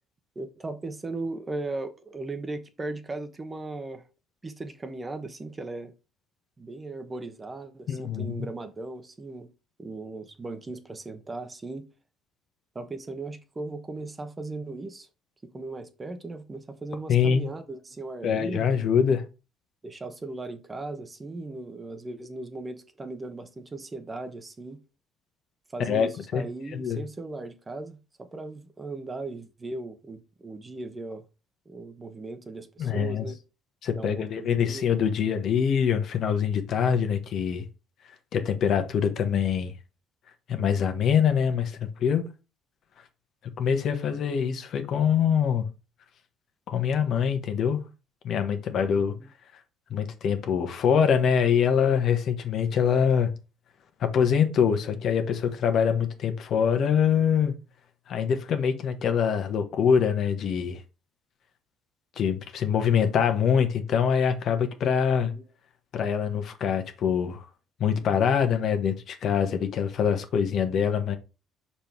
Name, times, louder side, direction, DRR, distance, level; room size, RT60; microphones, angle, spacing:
voice 1, 0.3-4.0 4.4-5.9 6.6-9.5 9.8-11.9 12.7-15.1 15.4-18.8 19.8-24.8 25.7-31.2 31.7-33.4 33.9-34.9 48.8-49.3 65.3-65.4, right 2 dB, 25° right, 1.0 m, -37 dB
voice 2, 7.9-8.3 17.1-17.5 18.2-19.2 25.9-26.4 26.7-27.0 32.8-33.2 33.8-37.6 38.3-39.7 40.5-42.2 43.6-45.7 46.7-47.8 48.2-49.1 49.9-53.3 54.0-57.5 58.1-60.8 62.2-65.3 65.9-67.4 67.8-71.2, left 7 dB, 60° left, 1.2 m, -24 dB
5.3 x 4.3 x 4.5 m
supercardioid pair, 85°, 0 cm